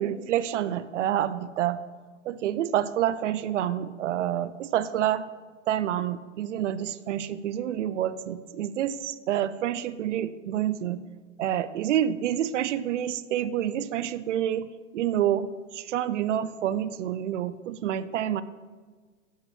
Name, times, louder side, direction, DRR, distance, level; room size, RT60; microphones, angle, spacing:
voice 1, 0.0-1.8 2.3-5.3 5.7-11.0 11.4-14.7 14.9-15.5 15.7-18.4, right 11 dB, 80° right, 14 dB, 0.5 m, -28 dB
11.0 x 4.5 x 3.2 m, 1.4 s
hypercardioid pair, 115°, 36 cm